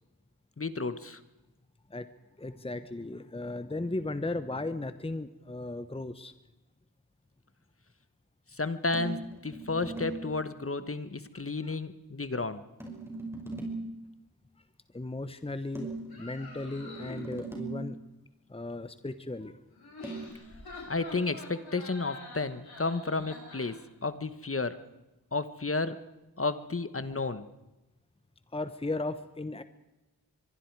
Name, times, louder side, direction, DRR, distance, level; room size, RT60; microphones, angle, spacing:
voice 1, 0.6-1.2 8.6-12.6 20.9-24.8 25.3-26.0 26.4-27.5, left 3 dB, 35° left, 12 dB, 1.3 m, -32 dB
voice 2, 2.4-6.3 11.6-11.7 14.9-18.0 18.5-19.6 28.5-29.6, left 2 dB, 15° left, 11 dB, 1.1 m, -36 dB
sound 1, 8.9-10.3 12.8-14.0 15.8-18.0 20.0-20.3, right 2 dB, 5° right, 6.0 m, -39 dB
sound 2, 16.1-17.4 19.7-23.8, left 3 dB, 75° left, 7.6 m, -46 dB
24.0 x 23.0 x 4.8 m, 0.99 s
cardioid pair, 55°, 38 cm